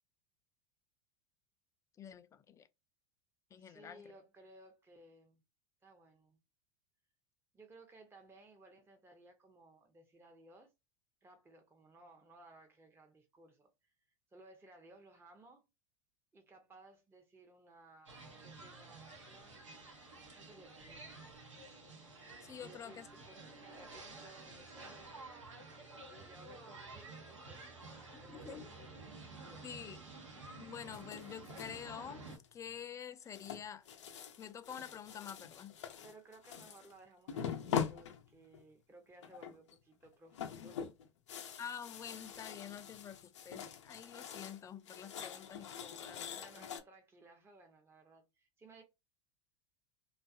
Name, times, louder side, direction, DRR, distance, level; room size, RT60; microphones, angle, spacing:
voice 1, 2.0-2.7 3.5-4.0 22.4-23.1 28.1-28.6 29.6-30.0 30.6-33.9 34.4-35.7 41.6-46.7, left 8 dB, 20° left, 0.4 m, -48 dB
voice 2, 3.6-5.4 5.8-6.4 7.5-10.7 11.2-13.9 14.3-15.7 16.3-19.6 20.3-21.4 22.6-25.2 26.1-28.7 29.4-29.8 36.0-40.8 41.3-41.6 46.3-48.8, right 2 dB, 15° right, 0.7 m, -60 dB
sound 1, 18.1-32.4, right 3 dB, 90° right, 0.9 m, -52 dB
sound 2, 30.9-31.8 32.3-32.7 33.3-36.9 37.3-38.7 39.2-39.7 40.0-44.6 44.9-46.8, left 8 dB, 75° left, 0.6 m, -43 dB
2.5 x 2.4 x 2.4 m
hypercardioid pair, 85°, 15 cm